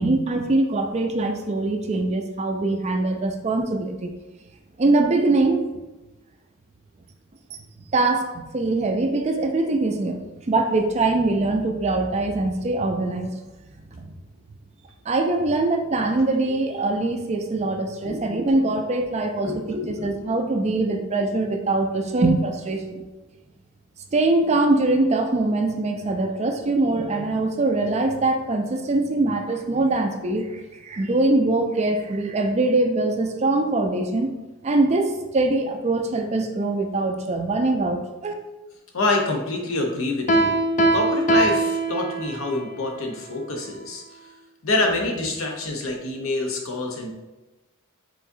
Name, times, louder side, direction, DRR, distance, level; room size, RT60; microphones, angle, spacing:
voice 1, 0.0-4.1 4.8-5.6 7.9-13.3 13.9-14.1 15.1-23.0 24.1-34.3 34.6-38.3, right 2 dB, 30° right, 5 dB, 0.4 m, -23 dB
voice 2, 19.4-20.1 38.9-40.6 40.9-44.0 44.6-47.1, left 2 dB, 70° left, 1 dB, 0.8 m, -26 dB
Piano, 40.3-42.6, right 2 dB, 35° left, 0.4 m, -21 dB
4.7 x 3.9 x 2.7 m, 1.1 s
head